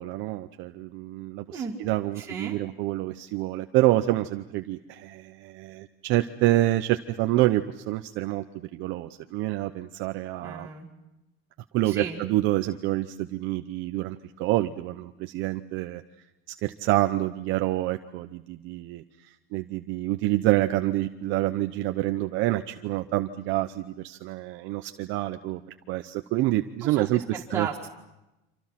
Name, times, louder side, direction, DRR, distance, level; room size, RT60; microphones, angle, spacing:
voice 1, 0.0-10.7 11.7-16.0 16.6-19.0 19.5-25.6 25.9-27.2 27.5-27.7, right 16 dB, 40° right, 8 dB, 0.8 m, -27 dB
voice 2, 2.2-2.6 10.4-10.9 11.8-12.2 26.8-27.9, right 5 dB, 10° right, -4 dB, 2.0 m, -35 dB
28.5 x 27.0 x 5.9 m, 0.96 s
cardioid pair, 170°, 30 cm